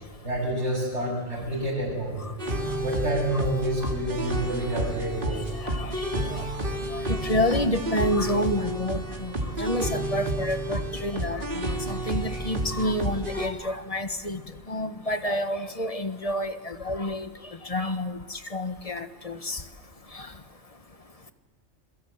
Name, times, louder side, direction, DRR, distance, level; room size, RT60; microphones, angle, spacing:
voice 1, 0.2-2.3 2.8-5.5, right 1 dB, 85° right, -7 dB, 7.0 m, -28 dB
sound 1, 2.4-13.5, right 1 dB, 45° right, 3.2 m, -30 dB
voice 2, 5.6-6.4 6.9-14.4 14.7-17.3 17.6-19.6 20.1-20.3, left 1 dB, 30° left, 9 dB, 1.5 m, -29 dB
26.5 x 22.5 x 8.1 m, 1.4 s
omnidirectional pair, 1.2 m